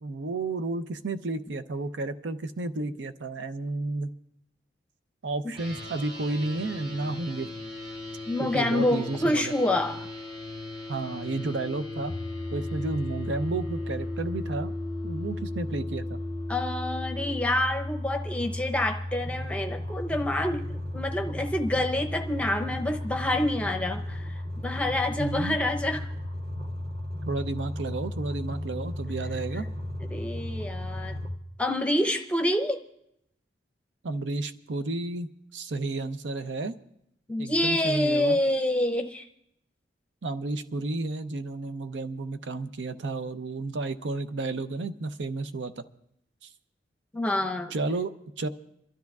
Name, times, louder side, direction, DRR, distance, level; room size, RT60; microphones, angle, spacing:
voice 1, 0.0-4.1 5.2-7.5 8.4-9.5 10.9-12.1 12.5-14.7 15.0-16.2 25.2-25.6 27.3-29.7 34.0-36.8 37.4-38.4 40.2-45.8 46.4-46.5 47.7-48.5, right 2 dB, 80° right, 11 dB, 0.6 m, -32 dB
sound 1, 5.5-17.4, left 2 dB, 30° right, 4.8 m, -39 dB
voice 2, 8.3-10.1 16.5-26.1 30.1-31.2 31.6-32.8 37.3-39.3 47.1-47.7, left 1 dB, 5° left, 5 dB, 0.7 m, -27 dB
sound 2, 12.1-31.3, left 1 dB, 55° right, 1.8 m, -35 dB
27.5 x 13.0 x 2.4 m, 0.78 s
head